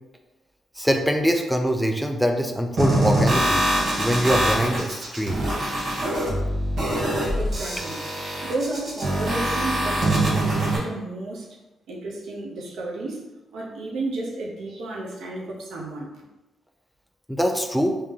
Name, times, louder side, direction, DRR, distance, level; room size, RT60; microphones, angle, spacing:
voice 1, 0.8-3.7 4.0-5.4 17.3-18.0, equal, ahead, 3 dB, 0.3 m, -23 dB
sound 1, 2.8-10.8, right 1 dB, 45° right, 1.1 m, -24 dB
voice 2, 7.4-8.1 8.4-11.5 11.9-13.2 13.5-16.1, right 2 dB, 70° right, -3 dB, 0.8 m, -32 dB
3.3 x 2.8 x 3.6 m, 1.0 s
cardioid pair, 180°, 0 cm